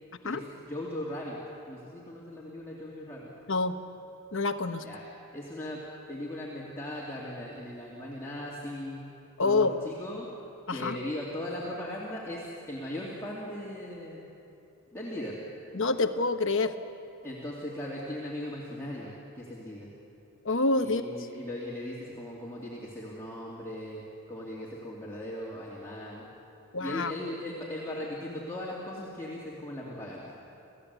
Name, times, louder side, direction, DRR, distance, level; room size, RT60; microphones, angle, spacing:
voice 1, 0.2-1.4 1.7-3.3 4.8-5.0 5.3-5.8 6.1-9.1 9.4-10.3 10.7-14.3 14.9-15.4 17.2-19.9 20.8-26.3 26.8-30.4, left 1 dB, 10° left, -6 dB, 2.7 m, -38 dB
voice 2, 4.3-4.8 9.4-9.8 10.7-11.0 15.7-16.7 20.4-21.1 26.7-27.1, left 3 dB, 60° left, 9 dB, 1.1 m, -27 dB
28.5 x 15.5 x 8.2 m, 2.8 s
head